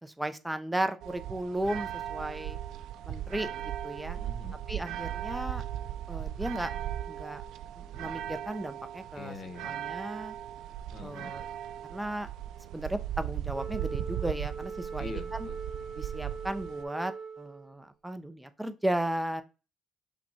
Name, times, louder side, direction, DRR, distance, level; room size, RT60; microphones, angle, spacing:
voice 1, 0.0-2.6 3.0-4.2 4.7-5.6 6.1-6.7 7.1-7.4 7.8-9.3 9.6-10.4 11.0-11.4 11.8-12.3 12.7-15.5 16.0-19.4, right 1 dB, 5° right, 10 dB, 0.5 m, -35 dB
sound 1, 1.0-16.8, right 11 dB, 70° right, 0.4 m, -38 dB
voice 2, 4.1-4.6 9.1-9.7 10.9-11.4 15.0-15.6, left 4 dB, 45° left, 8 dB, 0.9 m, -43 dB
Wind instrument woodwind instrument, 13.5-17.9, right 5 dB, 40° right, 1.0 m, -41 dB
5.8 x 2.3 x 4.1 m, 0.31 s
cardioid pair, 125°, 0 cm